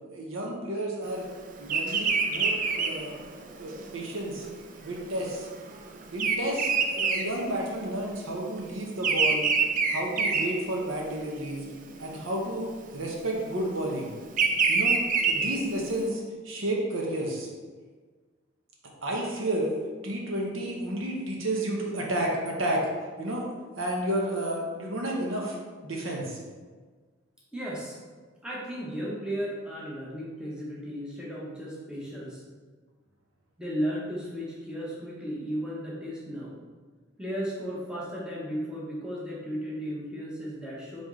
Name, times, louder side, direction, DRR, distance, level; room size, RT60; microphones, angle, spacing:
voice 1, 0.1-1.3 1.6-3.1 3.6-4.5 4.8-5.5 6.1-9.5 9.9-11.7 12.0-12.7 12.9-14.1 14.7-15.0 15.3-17.5 19.0-19.7 20.0-22.8 23.2-23.4 23.8-25.6 25.8-26.4, right 1 dB, 80° right, -1 dB, 0.9 m, -31 dB
Bird vocalization bird call bird song, 1.7-8.1 8.3-11.2 11.7-12.1 13.0-16.0, right 5 dB, 40° right, 0.4 m, -26 dB
voice 2, 27.5-28.0 28.4-32.4 33.6-36.5 37.2-41.0, equal, 5° right, -6 dB, 0.8 m, -35 dB
4.0 x 3.4 x 3.6 m, 1.4 s
head